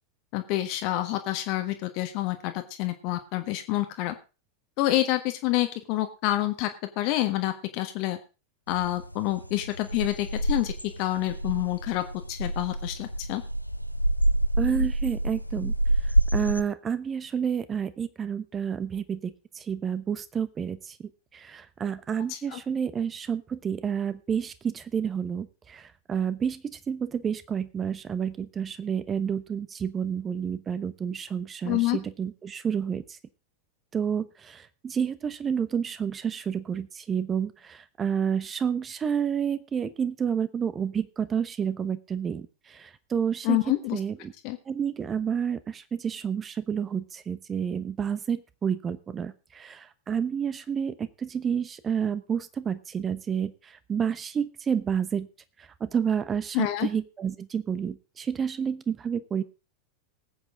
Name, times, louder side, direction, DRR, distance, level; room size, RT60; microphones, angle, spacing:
voice 1, 0.3-4.1 4.8-6.7 7.0-8.2 8.7-10.7 11.0-13.4 22.3-22.6 31.6-32.0 43.4-44.0 44.4-44.6 56.5-56.9, left 16 dB, 45° left, 7 dB, 1.4 m, -27 dB
sound 1, 8.7-16.6, right 1 dB, 90° left, 0.6 m, -28 dB
voice 2, 14.6-15.7 16.3-33.0 33.9-44.3 44.7-55.3 55.6-59.4, right 7 dB, 20° right, 14 dB, 1.0 m, -30 dB
19.5 x 8.4 x 3.8 m, 0.32 s
figure-of-eight pair, 90°, 0 cm